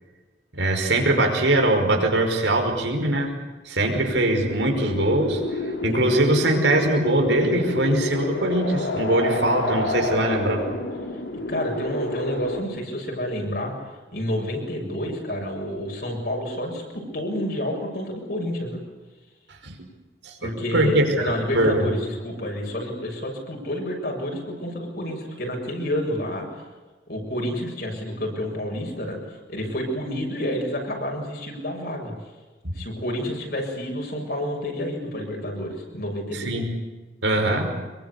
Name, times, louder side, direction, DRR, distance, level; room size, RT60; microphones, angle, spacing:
voice 1, 0.5-3.3 3.7-10.6 19.6-19.8 20.2-21.9 32.6-32.7 36.3-36.7 37.2-37.7, right 1 dB, 85° right, 3 dB, 5.4 m, -22 dB
sound 1, 3.8-12.6, left 2 dB, 80° left, 3.5 m, -29 dB
voice 2, 5.8-6.2 11.5-18.8 20.4-26.6 27.1-29.2 29.5-32.1 32.7-36.5 37.3-37.5, equal, 60° left, 1 dB, 7.3 m, -29 dB
25.5 x 22.5 x 8.4 m, 1.3 s
head